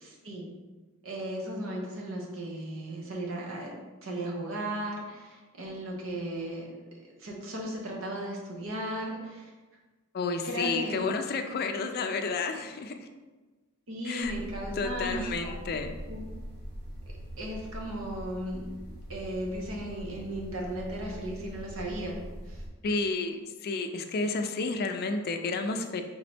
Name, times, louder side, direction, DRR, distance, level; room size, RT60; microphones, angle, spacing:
voice 1, 0.0-0.5 1.0-3.7 4.0-9.5 10.4-11.0 13.9-15.8 16.1-16.3 17.4-18.6 19.1-22.2 22.5-22.6, right 1 dB, 70° right, -1 dB, 0.9 m, -36 dB
voice 2, 10.1-13.1 14.0-14.3 14.8-16.0 22.8-26.0, left 3 dB, 50° left, 6 dB, 0.4 m, -31 dB
sound 1, 14.2-22.7, equal, 50° right, 1.1 m, -42 dB
3.9 x 3.6 x 3.4 m, 1.3 s
head